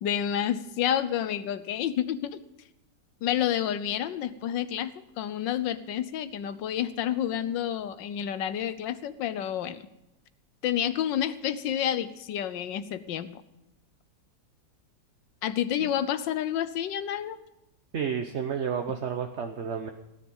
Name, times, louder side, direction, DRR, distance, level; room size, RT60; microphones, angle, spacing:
voice 1, 0.0-2.4 3.2-9.8 10.6-13.4 15.4-17.4, left 10 dB, 85° left, 13 dB, 1.5 m, -29 dB
voice 2, 17.9-19.9, right 7 dB, 50° right, 6 dB, 0.9 m, -31 dB
16.5 x 10.0 x 5.4 m, 0.93 s
omnidirectional pair, 1.9 m